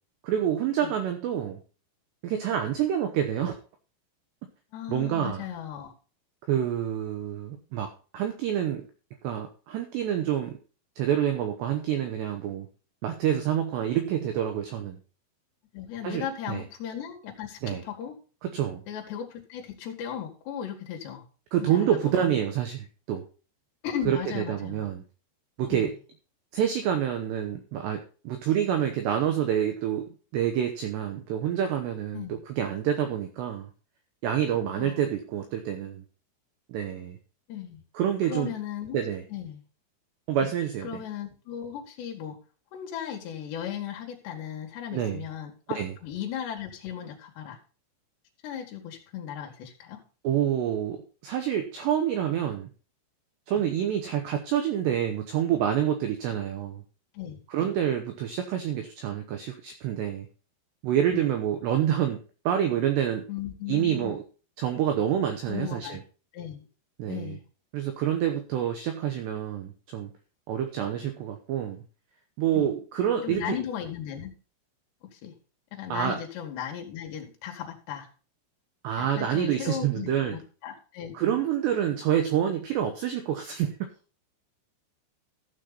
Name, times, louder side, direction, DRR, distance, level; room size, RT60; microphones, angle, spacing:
voice 1, 0.2-1.6 2.2-3.6 4.9-5.4 6.5-8.9 9.2-10.6 11.0-12.7 13.0-15.0 16.0-16.6 17.6-17.8 18.4-18.8 21.5-23.3 24.1-25.0 25.6-25.9 26.5-30.1 30.3-33.7 34.2-36.0 36.7-37.2 37.9-38.5 38.9-39.3 40.3-41.0 44.9-45.2 45.8-45.9 50.2-52.7 53.5-56.8 57.5-60.3 60.8-63.3 63.7-64.2 64.6-66.0 67.0-67.4 67.7-70.1 70.5-71.8 72.4-73.6 75.9-76.2 78.8-80.4 81.1-83.9, right 10 dB, 75° right, 6 dB, 2.7 m, -27 dB
voice 2, 4.7-5.9 7.5-7.6 15.7-18.2 18.9-21.2 21.6-22.3 23.8-24.9 25.6-25.9 32.1-32.4 34.8-35.1 37.5-37.8 38.3-39.0 39.3-39.6 40.4-40.5 40.8-42.4 42.7-47.6 48.4-50.0 57.1-57.7 61.1-61.3 63.3-64.2 65.5-66.0 66.3-66.6 67.1-67.4 72.5-72.7 73.2-74.3 75.1-75.3 75.7-78.1 79.0-81.1, left 9 dB, 65° left, 2 dB, 3.8 m, -36 dB
14.5 x 6.7 x 4.0 m, 0.36 s
omnidirectional pair, 5.8 m